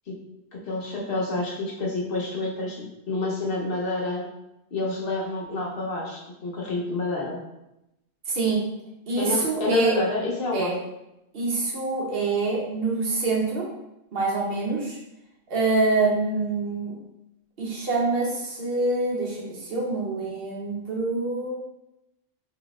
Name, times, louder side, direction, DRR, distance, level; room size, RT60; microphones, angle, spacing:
voice 1, 0.6-4.3 4.7-7.4 9.2-10.8, left 2 dB, 55° left, -2 dB, 0.8 m, -28 dB
voice 2, 8.3-8.6 9.1-9.9 10.5-10.7 11.3-13.7 14.1-15.0 15.5-16.9 17.6-21.6, right 3 dB, 55° right, -3 dB, 1.0 m, -25 dB
3.8 x 3.0 x 2.3 m, 0.90 s
omnidirectional pair, 1.3 m